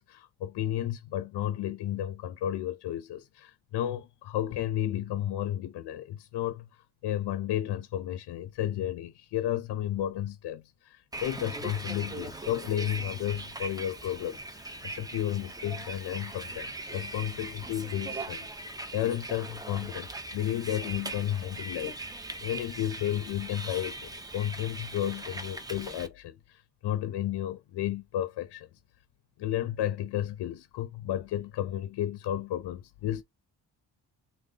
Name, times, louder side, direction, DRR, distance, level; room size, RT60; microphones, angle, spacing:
voice 1, 0.0-28.7 29.4-33.2, left 12 dB, 80° left, 0.5 m, -33 dB
Bus, 11.1-26.1, right 2 dB, 10° right, 0.6 m, -40 dB
3.8 x 2.1 x 3.7 m
cardioid pair, 120°, 40 cm